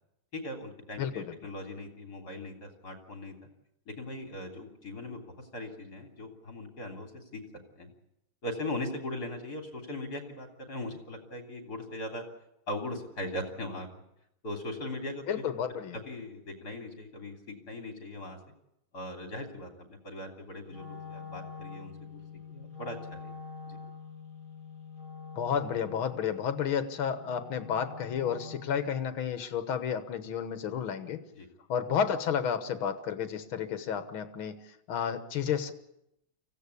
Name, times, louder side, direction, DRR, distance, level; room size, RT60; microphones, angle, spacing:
voice 1, 0.3-3.3 3.9-7.4 7.8-7.9 8.4-12.2 12.7-13.9 14.4-15.4 16.1-18.4 18.9-22.2 22.5-23.3 23.7-23.8 31.3-31.5, left 1 dB, 50° left, 3 dB, 3.8 m, -39 dB
voice 2, 1.0-1.4 15.3-16.0 25.4-31.2 31.7-34.6 34.9-35.7, left 8 dB, 85° left, 10 dB, 2.1 m, -31 dB
Wind instrument woodwind instrument, 20.6-28.9, left 5 dB, 25° right, 7.4 m, -45 dB
25.0 x 16.0 x 8.4 m, 0.84 s
omnidirectional pair, 2.2 m